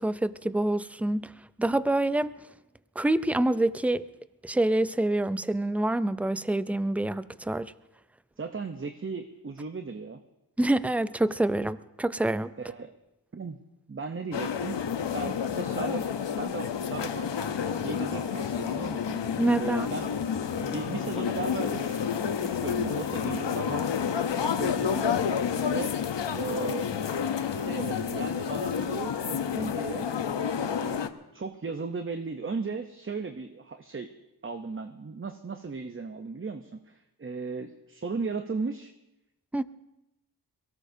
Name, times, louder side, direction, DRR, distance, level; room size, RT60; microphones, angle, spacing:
voice 1, 0.0-1.3 1.6-2.3 3.0-4.0 4.4-7.7 10.6-12.5 19.4-19.9 39.5-39.6, right 1 dB, 5° right, 15 dB, 0.4 m, -26 dB
voice 2, 8.4-10.2 12.6-12.9 13.3-13.6 13.9-14.8 15.1-20.1 20.4-22.1 22.4-23.9 24.4-25.2 25.6-25.9 26.3-26.9 27.5-30.1 30.6-34.1 34.4-38.9, right 4 dB, 30° right, 7 dB, 0.7 m, -36 dB
sound 1, 14.3-31.1, left 7 dB, 80° left, 0.8 m, -30 dB
23.0 x 18.0 x 2.7 m, 0.95 s
wide cardioid pair, 65°, 43 cm